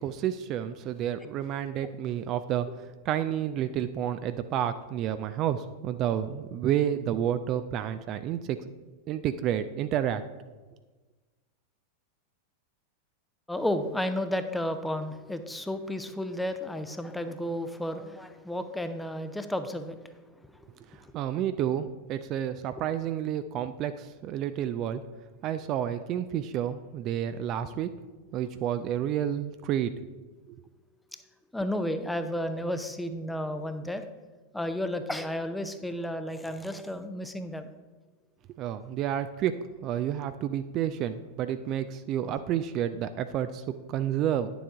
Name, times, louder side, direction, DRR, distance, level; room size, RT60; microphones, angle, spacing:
voice 1, 0.0-2.7 3.1-8.6 9.1-10.2 20.9-25.0 25.4-27.9 28.3-29.9 38.6-44.5, right 10 dB, 35° right, 11 dB, 0.3 m, -30 dB
voice 2, 13.5-20.1 20.4-20.7 21.0-21.1 28.3-28.5 31.1-31.2 31.5-34.0 34.5-37.7, left 1 dB, 5° left, 9 dB, 0.6 m, -32 dB
9.9 x 6.9 x 3.6 m, 1.3 s
figure-of-eight pair, 90°, 0 cm